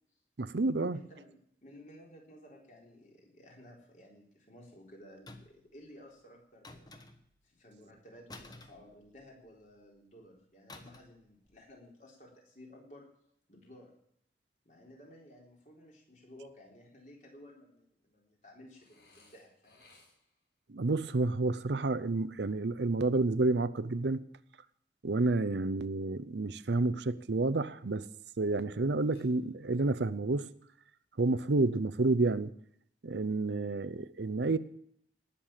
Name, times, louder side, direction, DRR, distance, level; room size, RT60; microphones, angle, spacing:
voice 1, 0.4-1.0 20.7-24.2 25.0-28.1 28.4-30.5 31.2-32.5 33.0-34.6, right 3 dB, 80° right, 16 dB, 0.7 m, -30 dB
voice 2, 0.9-6.9 7.4-13.1 13.5-13.9 14.7-19.8, left 1 dB, 45° left, -1 dB, 3.9 m, -55 dB
sound 1, 5.3-5.7 6.6-7.4 8.3-9.5 10.7-11.2 11.5-11.7, left 2 dB, 20° left, 1.1 m, -51 dB
Burping eructation, 18.7-20.5 29.1-29.9, left 3 dB, 65° left, 5.4 m, -63 dB
19.0 x 6.8 x 7.4 m, 0.71 s
head